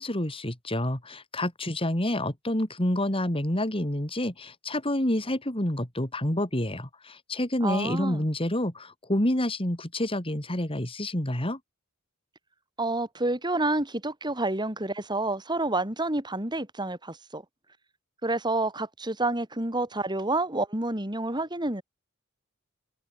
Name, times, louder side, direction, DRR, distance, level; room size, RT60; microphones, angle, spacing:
voice 1, 0.0-11.6, left 1 dB, 25° left, 3.6 m, -28 dB
voice 2, 7.6-8.2 12.8-17.4 18.2-21.8, right 2 dB, 20° right, 4.8 m, -29 dB
head